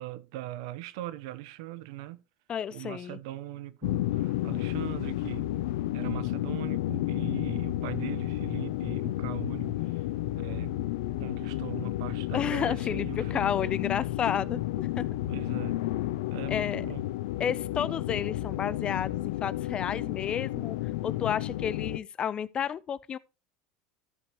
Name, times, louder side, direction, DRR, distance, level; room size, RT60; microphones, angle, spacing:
voice 1, 0.0-2.2 2.7-5.5 5.9-10.0 10.4-10.7 11.2-13.8 15.3-15.8 16.3-17.1, right 15 dB, 75° right, 0.8 m, -40 dB
voice 2, 2.5-3.2 12.3-15.1 16.5-16.9 17.4-20.8 21.0-23.2, left 8 dB, 35° left, 0.5 m, -31 dB
sound 1, 3.8-22.0, left 15 dB, 80° left, 0.6 m, -31 dB
13.5 x 5.2 x 3.0 m
supercardioid pair, 105°, 3 cm